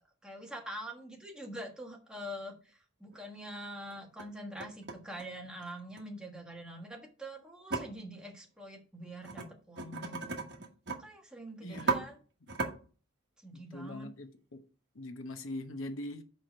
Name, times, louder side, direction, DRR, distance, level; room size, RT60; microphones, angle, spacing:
voice 1, 0.2-10.3 11.0-12.2 13.4-14.1, equal, 5° right, 1.3 m, -45 dB
sound 1, 2.5-2.6 3.1-3.2 3.9-4.3 4.6-6.0 7.7-7.8 9.2-9.5 9.8-11.0 11.3-11.4 11.7-12.0 12.5-12.7, right 4 dB, 55° right, 1.2 m, -35 dB
voice 2, 11.6-12.1 13.5-14.3 14.9-16.2, left 1 dB, 90° left, 0.9 m, -41 dB
4.8 x 4.5 x 6.1 m
head